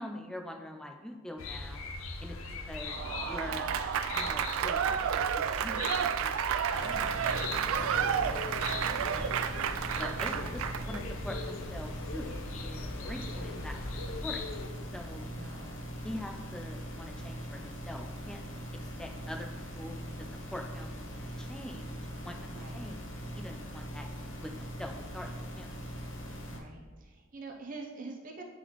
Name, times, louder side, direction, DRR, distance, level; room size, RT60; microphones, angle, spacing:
voice 1, 0.0-1.8 2.2-2.4 2.7-2.9 3.2-3.7 4.1-6.4 6.7-7.5 7.7-9.6 10.0-14.5 14.9-15.3 16.0-18.4 19.0-23.0 23.3-24.1 24.4-25.3 25.6-25.7, left 1 dB, 5° left, 3 dB, 0.4 m, -44 dB
sound 1, 1.4-14.7, left 3 dB, 85° left, 0.6 m, -40 dB
Applause / Crowd, 2.8-11.0, right 8 dB, 90° right, 0.3 m, -31 dB
sound 2, 6.7-26.6, equal, 65° left, 1.0 m, -41 dB
voice 2, 13.0-14.0 15.2-15.8 22.5-22.8 26.5-28.4, right 3 dB, 40° right, 0 dB, 0.7 m, -47 dB
9.8 x 4.0 x 3.0 m, 1.5 s
head